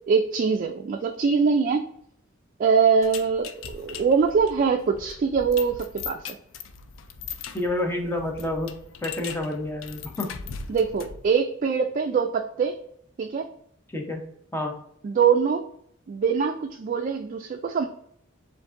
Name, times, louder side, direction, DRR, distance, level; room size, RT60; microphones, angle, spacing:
voice 1, 0.1-1.9 2.6-6.4 10.7-12.7 13.2-13.5 15.0-15.6 16.1-17.9, right 6 dB, 45° right, 4 dB, 0.3 m, -23 dB
sound 1, 3.0-11.3, left 6 dB, 85° left, 0.4 m, -40 dB
voice 2, 7.5-8.7 9.0-10.3 13.9-14.2 14.5-14.7, left 1 dB, 10° left, 1 dB, 0.7 m, -29 dB
7.3 x 2.6 x 2.5 m, 0.71 s
head